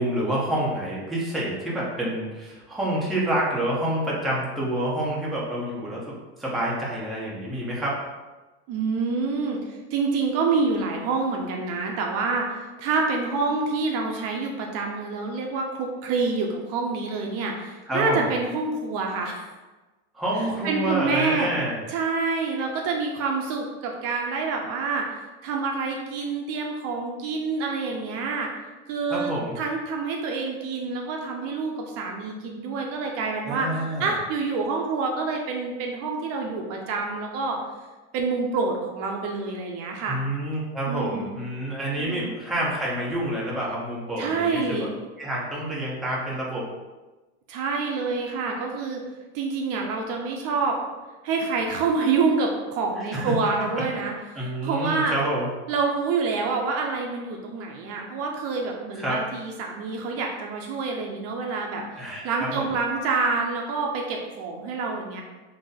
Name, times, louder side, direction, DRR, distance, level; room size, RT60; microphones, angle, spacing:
voice 1, 0.0-8.0 17.8-18.3 20.1-21.8 29.1-29.6 33.4-34.1 40.1-44.9 45.2-46.6 53.0-53.3 54.3-55.5 58.9-59.2 62.0-62.7, right 1 dB, ahead, -6 dB, 0.6 m, -28 dB
voice 2, 8.7-19.4 20.6-21.5 21.9-28.5 28.9-29.3 29.6-37.6 38.1-40.2 40.9-41.3 42.0-42.4 44.2-44.9 47.5-49.0 49.3-50.8 51.2-55.2 55.7-61.8 62.2-65.2, right 4 dB, 50° right, 1 dB, 0.5 m, -27 dB
2.6 x 2.4 x 3.9 m, 1.2 s
supercardioid pair, 140°, 32 cm